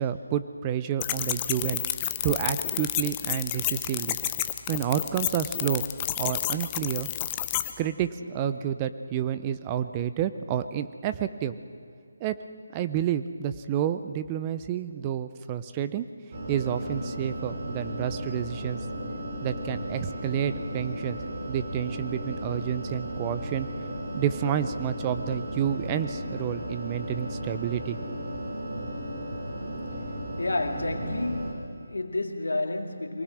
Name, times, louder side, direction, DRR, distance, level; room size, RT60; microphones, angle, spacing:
voice 1, 0.0-1.8 2.2-4.2 4.7-5.8 6.2-7.1 7.8-11.5 12.2-12.4 12.7-16.1 16.5-18.8 19.4-21.2 21.5-23.7 24.1-28.2, right 10 dB, 20° right, 11 dB, 0.6 m, -29 dB
sound 1, 1.0-7.7, left 14 dB, 20° left, 0.6 m, -30 dB
sound 2, 16.3-31.5, equal, 50° right, 4.5 m, -35 dB
voice 2, 30.4-33.2, left 2 dB, 80° left, 5 dB, 2.1 m, -30 dB
23.5 x 19.0 x 6.3 m, 2.4 s
figure-of-eight pair, 160°, 0 cm